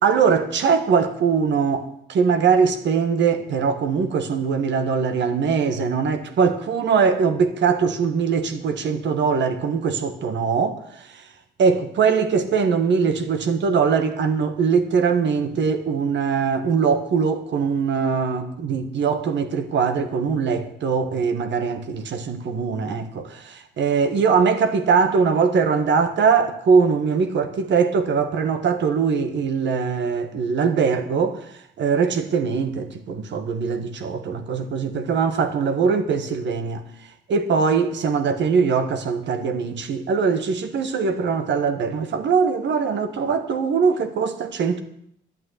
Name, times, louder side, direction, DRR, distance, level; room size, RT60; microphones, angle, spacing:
voice 1, 0.0-10.8 11.6-31.4 31.8-36.9 37.3-44.8, right 5 dB, 65° right, 1.5 m, -21 dB
11.0 x 8.9 x 8.0 m
cardioid pair, 90°, 20 cm